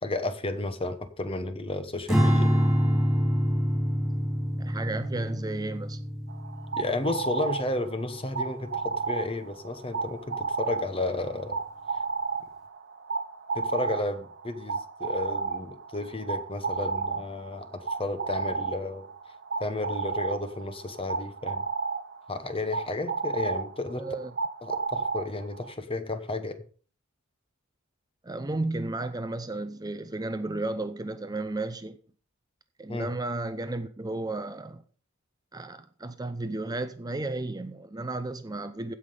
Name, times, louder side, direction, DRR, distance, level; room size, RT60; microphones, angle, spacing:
voice 1, 0.0-2.5 6.8-11.6 13.5-19.1 19.6-21.7 22.3-24.1 24.6-26.6 32.9-33.1, left 2 dB, 25° left, 1.0 m, -32 dB
Strum, 2.1-8.5, equal, 5° right, 3.2 m, -26 dB
voice 2, 4.6-6.0 24.0-24.3 28.2-32.0 32.8-34.8 35.5-38.9, right 2 dB, 20° right, 0.6 m, -33 dB
sound 1, 6.3-25.7, right 4 dB, 55° right, 1.1 m, -33 dB
16.0 x 5.7 x 5.0 m
head